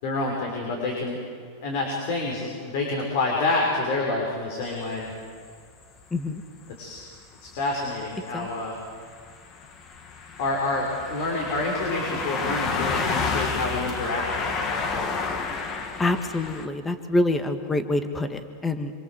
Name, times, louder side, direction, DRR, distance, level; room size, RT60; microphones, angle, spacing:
voice 1, 0.0-1.2 1.6-5.1 6.8-7.1 7.4-8.8 10.4-14.7, left 2 dB, 60° left, 0 dB, 6.1 m, -28 dB
sound 1, 4.6-4.7 6.2-6.3 7.0-7.1 7.4-7.6 7.9-16.7, left 4 dB, 30° left, 2.1 m, -30 dB
voice 2, 6.1-6.4 8.3-8.5 16.0-18.9, left 2 dB, 10° left, 8 dB, 1.5 m, -26 dB
26.5 x 26.0 x 8.0 m, 2.3 s
supercardioid pair, 155°, 0 cm